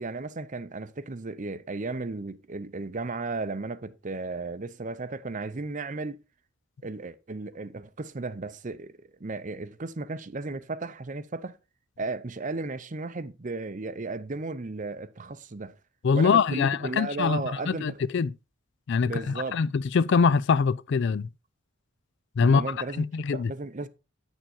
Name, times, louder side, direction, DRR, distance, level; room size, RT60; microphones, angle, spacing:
voice 1, 0.0-6.2 6.8-11.6 12.0-15.7 16.1-18.0 19.0-19.6 22.4-23.0 23.3-23.9, right 3 dB, 35° right, 0.6 m, -35 dB
voice 2, 16.0-18.3 18.9-21.3 22.4-22.6 23.0-23.5, left 5 dB, 55° left, 0.3 m, -24 dB
9.0 x 6.9 x 4.3 m
head